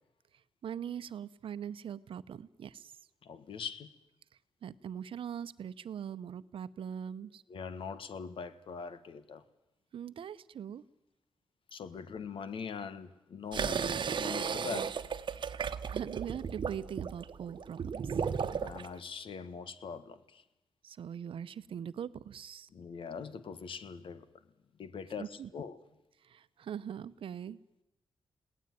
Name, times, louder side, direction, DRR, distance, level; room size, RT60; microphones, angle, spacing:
voice 1, 0.6-2.9 4.6-7.4 9.9-10.8 15.9-18.2 20.8-22.7 25.2-25.5 26.2-27.6, right 8 dB, 80° right, 0.8 m, -41 dB
voice 2, 3.2-4.0 7.5-9.4 11.7-15.0 18.6-20.4 22.7-24.3 24.8-25.8, left 6 dB, 75° left, 1.5 m, -42 dB
sound 1, 13.5-18.9, right 6 dB, 60° right, 1.1 m, -35 dB
21.5 x 17.5 x 9.3 m
cardioid pair, 95°, 9 cm